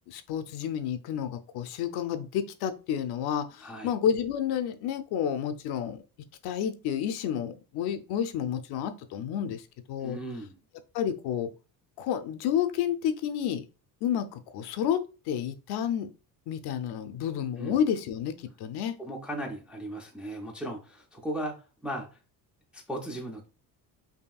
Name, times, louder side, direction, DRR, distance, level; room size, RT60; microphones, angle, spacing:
voice 1, 0.1-6.0 6.4-10.2 10.9-11.5 12.0-13.7 14.0-16.1 16.5-18.9, left 9 dB, 70° left, 0.6 m, -30 dB
voice 2, 3.6-3.9 10.0-10.6 17.6-17.8 19.0-21.6 21.8-22.2 22.7-23.5, right 1 dB, 5° right, 0.4 m, -36 dB
5.5 x 2.7 x 2.3 m
cardioid pair, 170°, 40 cm